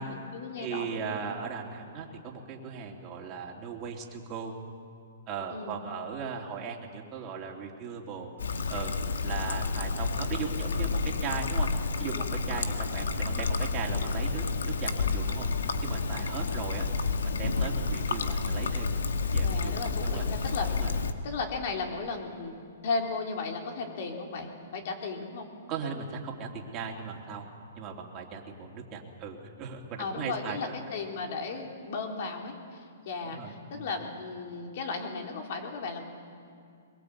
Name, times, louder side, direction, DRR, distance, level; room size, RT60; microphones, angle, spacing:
voice 1, 0.0-1.0 5.5-5.8 19.4-20.7 21.2-22.5 22.8-25.5 30.0-36.0, left 4 dB, 55° left, 2 dB, 3.8 m, -35 dB
voice 2, 0.6-4.6 5.3-8.3 8.7-8.9 9.2-11.7 12.0-16.9 17.2-20.2 20.7-20.9 25.7-27.5 27.8-30.8 33.2-33.9, right 6 dB, 30° right, -1 dB, 3.2 m, -38 dB
Trickle dribble, 8.4-21.1, left 4 dB, 90° left, 1.4 m, -30 dB
22.5 x 22.0 x 8.4 m, 2.3 s
hypercardioid pair, 145°, 0 cm